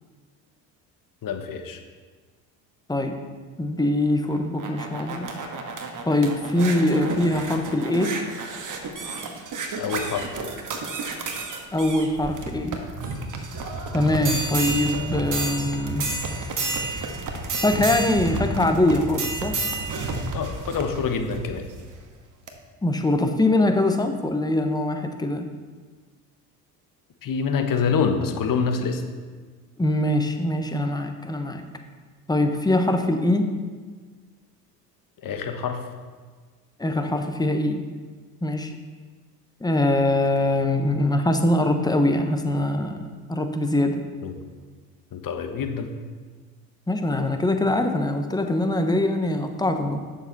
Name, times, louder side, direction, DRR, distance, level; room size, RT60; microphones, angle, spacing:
voice 1, 1.2-1.8 9.8-10.3 20.3-21.7 27.2-29.0 35.2-35.8 44.2-44.3 45.1-45.9, left 5 dB, 40° left, 5 dB, 1.3 m, -26 dB
voice 2, 3.6-5.3 6.1-8.1 11.7-12.8 13.9-16.1 17.6-19.6 22.8-25.5 29.8-31.6 32.3-33.5 36.8-37.8 38.4-38.8 39.6-44.0 46.9-50.0, left 1 dB, 10° left, 6 dB, 1.0 m, -23 dB
sound 1, 4.3-21.9 22.5-22.6, right 3 dB, 40° right, 1.4 m, -31 dB
9.1 x 7.0 x 4.1 m, 1.5 s
hypercardioid pair, 60°, 49 cm